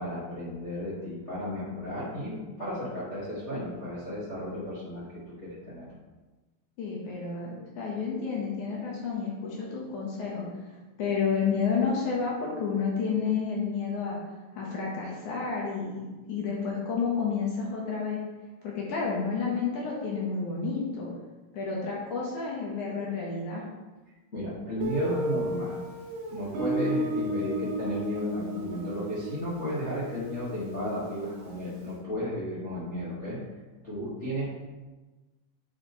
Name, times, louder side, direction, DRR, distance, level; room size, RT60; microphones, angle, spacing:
voice 1, 0.0-5.0 5.4-5.8 24.3-25.7 26.3-33.4 33.8-34.5, equal, 90° left, -9 dB, 0.6 m, -33 dB
voice 2, 6.8-10.5 11.0-14.2 14.5-18.2 18.6-21.1 21.5-23.6, left 5 dB, 70° left, -3 dB, 1.9 m, -30 dB
Guitar, 24.8-31.5, right 1 dB, 80° right, 1.5 m, -33 dB
9.3 x 6.5 x 3.2 m, 1.2 s
omnidirectional pair, 5.1 m